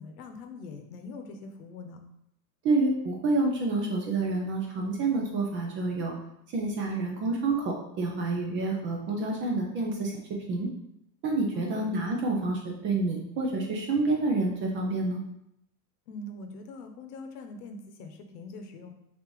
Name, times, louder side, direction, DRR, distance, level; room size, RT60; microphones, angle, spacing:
voice 1, 0.0-2.0 11.5-11.9 16.1-18.9, left 3 dB, 70° left, 5 dB, 0.9 m, -43 dB
voice 2, 2.6-6.1 6.5-10.1 10.5-10.7 11.2-15.2, right 3 dB, 25° right, 1 dB, 0.5 m, -28 dB
6.0 x 2.7 x 3.1 m, 0.79 s
supercardioid pair, 135°, 49 cm